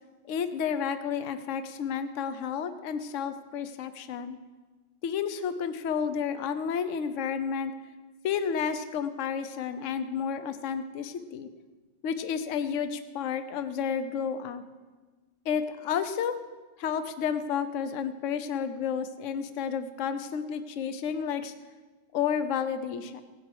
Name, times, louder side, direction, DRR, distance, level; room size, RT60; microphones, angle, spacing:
voice 1, 0.2-4.4 5.0-7.7 8.2-11.5 12.0-14.6 15.4-16.4 16.8-21.5 22.1-23.2, left 7 dB, 55° left, 10 dB, 0.9 m, -31 dB
17.5 x 9.7 x 4.9 m, 1.3 s
omnidirectional pair, 2.2 m